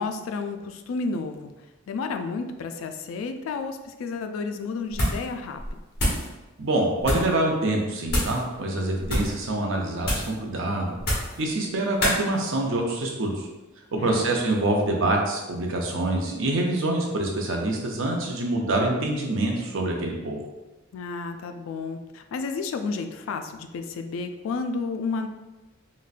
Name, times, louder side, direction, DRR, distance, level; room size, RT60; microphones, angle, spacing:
voice 1, 0.0-1.5 1.9-5.8 13.9-14.3 20.9-25.3, left 4 dB, 75° left, 7 dB, 0.3 m, -31 dB
sound 1, 4.9-5.3 5.6-6.3 7.0-7.3 8.1-8.4 9.0-9.4 10.0-10.4 11.0-11.4 12.0-12.2, equal, 50° left, 1.1 m, -26 dB
voice 2, 6.6-10.9 11.4-13.4 13.9-20.4, right 2 dB, 70° right, 0 dB, 0.6 m, -26 dB
3.8 x 2.1 x 2.4 m, 1.1 s
head